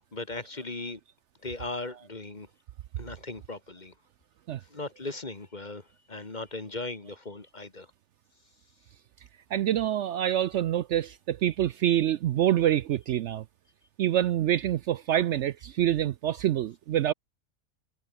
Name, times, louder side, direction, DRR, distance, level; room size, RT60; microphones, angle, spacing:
voice 1, 0.1-1.0 1.4-2.5 3.0-3.9 4.7-7.9, left 2 dB, 30° left, 2.2 m, -38 dB
voice 2, 9.5-13.4 14.0-17.1, right 11 dB, 65° right, 0.8 m, -26 dB
omnidirectional pair, 1.4 m